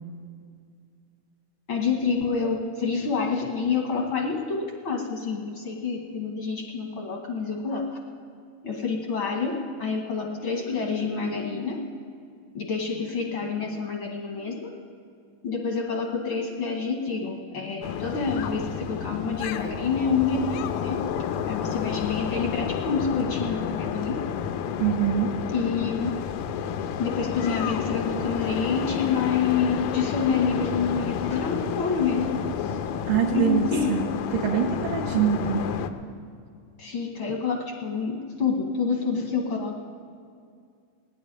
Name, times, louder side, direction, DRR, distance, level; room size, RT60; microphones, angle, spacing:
voice 1, 1.7-8.0 8.6-11.8 12.5-14.7 15.4-21.0 21.4-24.2 25.5-26.1 27.0-32.8 33.3-33.9 36.8-39.8, left 5 dB, 65° left, 1 dB, 1.2 m, -27 dB
sound 1, 17.8-35.9, left 8 dB, 90° left, 2.3 m, -30 dB
voice 2, 24.8-25.3 33.1-34.0 34.3-35.6, right 8 dB, 75° right, -1 dB, 2.4 m, -24 dB
17.5 x 7.1 x 9.8 m, 2.3 s
omnidirectional pair, 3.9 m